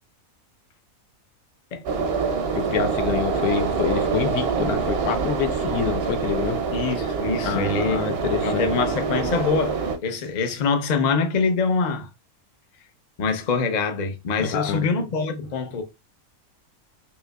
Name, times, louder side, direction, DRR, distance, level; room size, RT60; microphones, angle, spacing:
sound 1, 1.9-10.0, right 5 dB, 60° right, 0.7 m, -25 dB
voice 1, 2.5-6.6 7.4-8.7 14.4-14.9, left 8 dB, 85° left, 1.2 m, -27 dB
voice 2, 6.7-8.0 8.4-12.1 13.2-15.8, left 4 dB, 45° left, 0.6 m, -24 dB
5.4 x 2.9 x 2.3 m
omnidirectional pair, 1.5 m